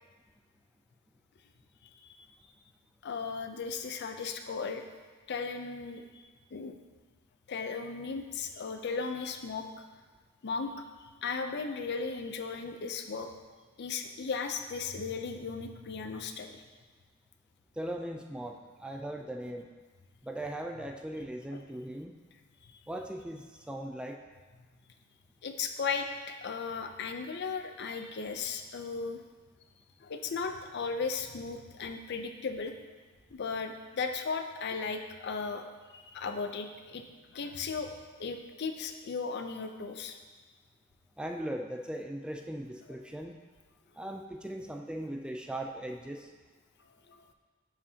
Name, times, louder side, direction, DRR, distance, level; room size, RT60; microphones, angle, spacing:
voice 1, 3.0-4.8 5.3-6.2 6.5-6.8 7.5-9.7 10.4-10.7 11.2-13.3 13.8-16.6 21.5-21.6 22.6-22.8 25.4-29.2 30.0-32.7 33.3-35.6 35.9-37.0 37.3-37.9 38.2-40.2 47.1-47.2, left 5 dB, 55° left, 6 dB, 0.5 m, -36 dB
voice 2, 17.8-19.7 20.2-22.1 22.9-24.2 41.2-43.4 44.0-46.3, right 1 dB, 5° right, 3 dB, 0.3 m, -39 dB
10.5 x 5.0 x 2.8 m, 1.4 s
head